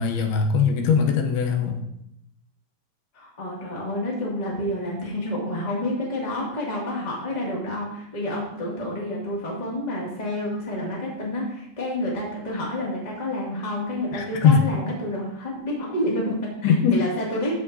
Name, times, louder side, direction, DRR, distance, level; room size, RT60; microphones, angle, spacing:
voice 1, 0.0-1.8 14.1-14.6 16.6-17.0, left 6 dB, 80° left, 4 dB, 2.8 m, -20 dB
voice 2, 3.1-17.5, left 1 dB, 15° left, -4 dB, 1.4 m, -29 dB
14.0 x 5.9 x 2.7 m, 0.77 s
omnidirectional pair, 4.5 m